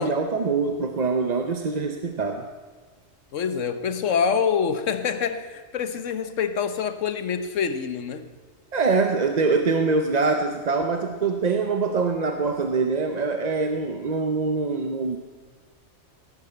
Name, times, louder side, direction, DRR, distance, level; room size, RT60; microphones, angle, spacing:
voice 1, 0.0-2.5 8.7-15.2, right 4 dB, 40° right, 5 dB, 0.8 m, -24 dB
voice 2, 3.3-8.3, left 6 dB, 80° left, 11 dB, 1.3 m, -26 dB
17.0 x 8.4 x 8.1 m, 1.5 s
omnidirectional pair, 1.3 m